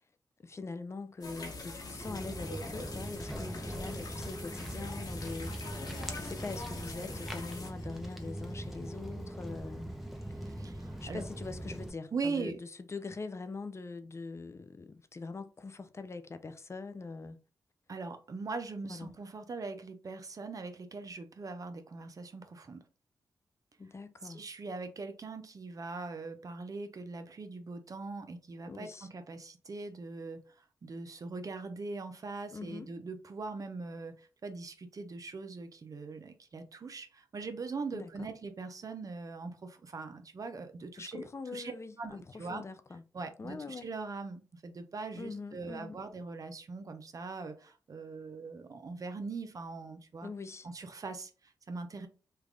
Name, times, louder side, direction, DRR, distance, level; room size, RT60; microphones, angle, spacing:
voice 1, 0.4-9.9 11.0-17.4 18.9-19.1 23.8-24.5 28.7-29.1 32.5-32.9 37.9-38.3 41.0-43.0 43.4-43.9 45.1-46.0 50.2-50.7, left 3 dB, 40° left, 0.5 m, -43 dB
sound 1, 1.2-7.7, left 2 dB, 60° left, 1.2 m, -44 dB
Walk footsteps, 2.0-11.9, right 1 dB, 5° right, 0.7 m, -41 dB
sound 2, 3.2-9.7, left 2 dB, 75° left, 1.5 m, -57 dB
voice 2, 10.4-11.2 12.1-12.6 17.9-22.8 24.2-41.3 41.5-42.6 43.1-50.3 50.6-52.1, right 4 dB, 50° right, 0.7 m, -41 dB
3.3 x 2.4 x 3.4 m
cardioid pair, 60°, 7 cm